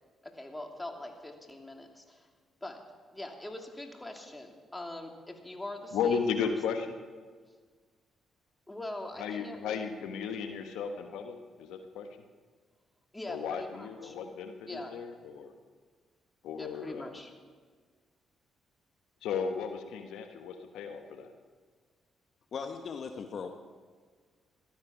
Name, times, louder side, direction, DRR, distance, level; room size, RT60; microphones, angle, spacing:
voice 1, 0.2-2.3 2.6-2.8 3.1-6.8 8.7-9.8 13.1-14.2 14.6-15.0 16.6-17.3, left 1 dB, 15° left, 2 dB, 2.8 m, -43 dB
voice 2, 5.9-6.9 9.2-12.1 13.3-15.5 16.4-17.1 19.2-21.3, left 6 dB, 80° left, 6 dB, 1.1 m, -34 dB
voice 3, 22.5-23.5, left 5 dB, 60° left, 5 dB, 1.2 m, -38 dB
16.5 x 12.5 x 6.0 m, 1.6 s
supercardioid pair, 60°, 0 cm